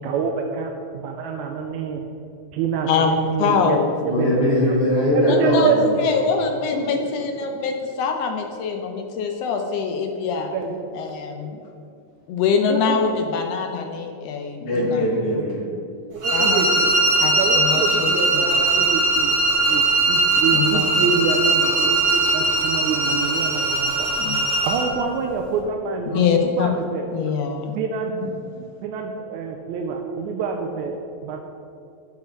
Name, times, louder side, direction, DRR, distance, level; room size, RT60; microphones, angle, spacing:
voice 1, 0.0-2.0 2.5-4.3 5.1-5.9 10.5-10.8 12.6-13.1 16.1-16.9 17.4-19.3 19.6-24.2 24.6-27.1 27.8-28.1 28.8-31.4, right 5 dB, 85° right, 3 dB, 2.0 m, -26 dB
voice 2, 2.9-3.9 5.2-5.7 6.0-10.5 10.9-11.6 12.3-15.0 16.3-16.6 17.2-17.3 17.6-18.5 20.5-20.9 24.2-24.4 26.1-26.7 27.1-27.7 28.5-28.6, left 6 dB, 80° left, 4 dB, 1.5 m, -24 dB
voice 3, 4.0-5.7 6.7-6.8 14.6-15.8, equal, 55° left, -5 dB, 2.3 m, -21 dB
sound 1, 16.2-24.9, right 2 dB, 35° right, 2.3 m, -20 dB
10.5 x 4.7 x 5.8 m, 2.4 s
omnidirectional pair, 3.4 m